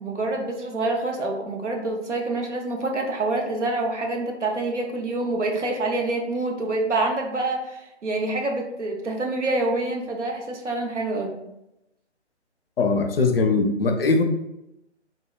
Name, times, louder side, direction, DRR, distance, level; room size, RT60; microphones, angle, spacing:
voice 1, 0.0-11.3, right 2 dB, 80° right, 2 dB, 0.7 m, -26 dB
voice 2, 12.8-14.2, left 3 dB, 55° left, 5 dB, 0.4 m, -21 dB
3.7 x 2.0 x 2.2 m, 0.88 s
figure-of-eight pair, 140°, 35 cm